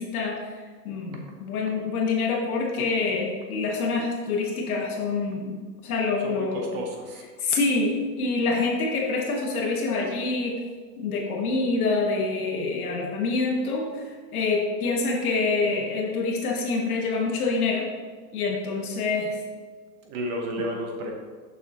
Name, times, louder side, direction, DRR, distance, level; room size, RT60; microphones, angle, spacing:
voice 1, 0.0-6.6 7.4-10.6 11.0-17.9 18.3-19.4, left 3 dB, 60° left, -1 dB, 1.3 m, -26 dB
voice 2, 6.2-7.3 20.0-21.1, equal, 20° right, 2 dB, 0.7 m, -32 dB
6.6 x 6.5 x 2.8 m, 1.5 s
hypercardioid pair, 150°, 49 cm